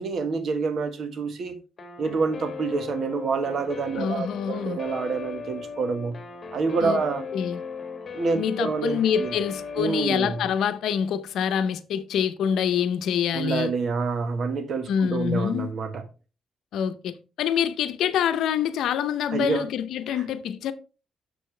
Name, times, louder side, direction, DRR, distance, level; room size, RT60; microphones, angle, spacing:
voice 1, 0.0-1.6 2.0-6.2 6.5-7.2 8.1-9.4 9.8-10.4 13.3-16.0 19.3-19.6 20.1-20.2, right 4 dB, 60° right, 1.4 m, -27 dB
Guitar, 1.8-10.5, left 5 dB, 45° left, 1.6 m, -38 dB
voice 2, 4.0-4.8 6.8-7.0 7.3-7.6 8.3-13.7 14.9-15.7 16.7-20.7, left 8 dB, 85° left, 0.7 m, -26 dB
7.0 x 6.9 x 3.3 m
cardioid pair, 85°, 0 cm